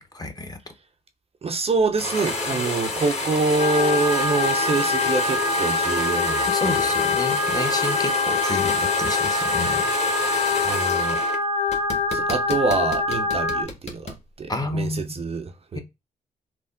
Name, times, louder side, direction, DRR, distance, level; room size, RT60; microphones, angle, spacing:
voice 1, 0.1-0.6 2.5-2.6 6.5-9.9 10.2-10.6 14.5-15.2 15.7-15.8, left 2 dB, 20° left, 0.7 m, -30 dB
voice 2, 1.4-6.9 10.4-11.2 12.1-15.8, right 3 dB, 35° right, 0.4 m, -26 dB
sound 1, 2.0-11.4 11.7-14.2, left 2 dB, 35° left, 1.1 m, -29 dB
sound 2, 3.6-13.6, left 3 dB, 85° left, 0.5 m, -24 dB
3.3 x 2.0 x 2.4 m
hypercardioid pair, 40°, 18 cm